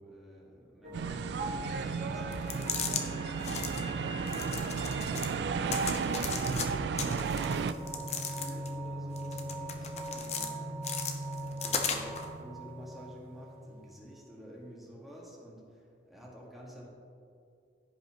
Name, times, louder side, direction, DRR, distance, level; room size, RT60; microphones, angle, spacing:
voice 1, 0.0-4.3 6.0-11.1 11.4-16.9, equal, ahead, -5 dB, 1.7 m, -51 dB
sound 1, 0.8-14.2, right 1 dB, 50° right, 1.1 m, -42 dB
sound 2, 0.9-7.7, right 5 dB, 70° right, 0.3 m, -33 dB
sound 3, 2.3-3.0 3.4-3.8 4.3-5.3 5.7-6.7 7.0-8.8 9.2-10.5 10.8-12.3, left 6 dB, 40° left, 0.7 m, -36 dB
15.0 x 5.4 x 3.0 m, 2.4 s
head